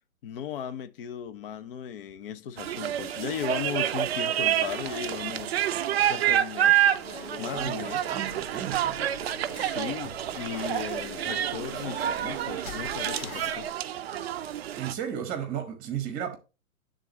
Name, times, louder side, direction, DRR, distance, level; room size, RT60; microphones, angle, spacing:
voice 1, 0.2-5.6 6.0-7.0 7.4-8.1 9.5-13.7, left 8 dB, 40° left, 0.7 m, -36 dB
sound 1, 2.6-14.9, right 11 dB, 50° right, 0.4 m, -28 dB
sound 2, 6.9-13.7, left 5 dB, 75° left, 1.3 m, -45 dB
voice 2, 7.5-9.0 14.8-16.4, right 9 dB, 20° right, 1.2 m, -34 dB
9.0 x 3.8 x 4.1 m
hypercardioid pair, 140°, 42 cm